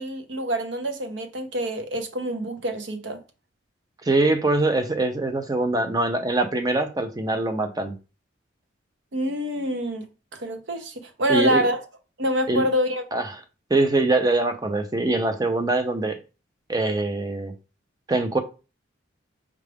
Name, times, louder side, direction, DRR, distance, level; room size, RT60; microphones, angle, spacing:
voice 1, 0.0-3.2 9.1-11.8 12.2-13.0, equal, 70° right, 0.7 m, -26 dB
voice 2, 4.0-7.9 11.3-11.6 12.5-12.6 13.1-13.3 13.7-16.2 16.7-17.5 18.1-18.4, right 2 dB, 20° right, 0.5 m, -23 dB
4.7 x 2.4 x 3.3 m
head